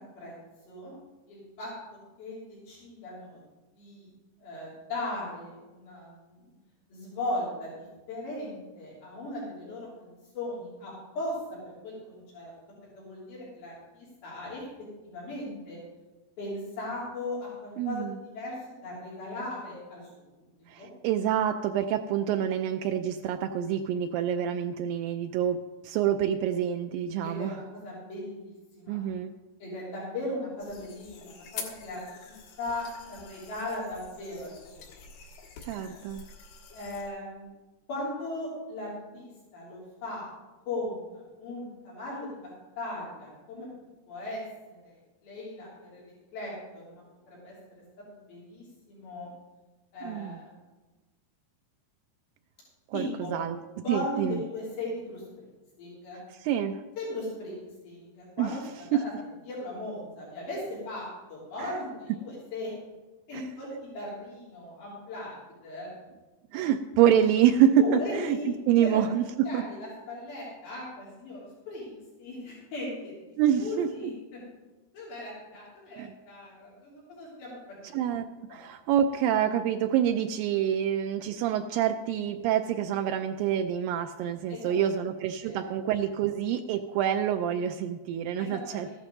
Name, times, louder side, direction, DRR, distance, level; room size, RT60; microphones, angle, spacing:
voice 1, 1.3-1.7 2.2-3.4 3.8-4.1 4.4-6.4 6.9-11.4 11.7-12.5 13.0-14.6 15.0-15.8 16.4-18.6 18.8-20.0 20.8-20.9 27.2-29.0 29.6-34.6 36.7-37.5 37.9-40.3 40.7-42.5 42.8-43.7 44.1-44.4 44.7-46.0 46.3-47.5 48.1-49.3 49.9-50.5 52.9-53.3 53.8-55.2 55.8-56.2 57.0-57.6 57.8-58.6 59.5-62.7 63.3-63.7 63.9-65.4 65.6-65.9 67.8-69.0 69.4-73.1 73.6-74.4 74.9-77.6 77.9-78.1 78.5-78.6 84.5-84.9 85.4-85.7 88.4-88.9, left 1 dB, 65° left, -7 dB, 5.2 m, -38 dB
voice 2, 17.8-18.2 20.7-27.6 28.9-29.3 35.6-36.2 50.0-50.4 52.9-53.1 53.3-53.6 53.9-54.4 56.3-56.8 58.4-58.6 58.9-59.0 61.6-61.8 63.3-63.5 66.5-69.6 73.4-74.1 76.0-76.1 77.9-88.9, right 9 dB, 90° right, 6 dB, 2.0 m, -27 dB
sound 1, 30.6-37.1, left 6 dB, 90° left, 3.5 m, -46 dB
14.0 x 12.0 x 4.0 m, 1.2 s
omnidirectional pair, 4.6 m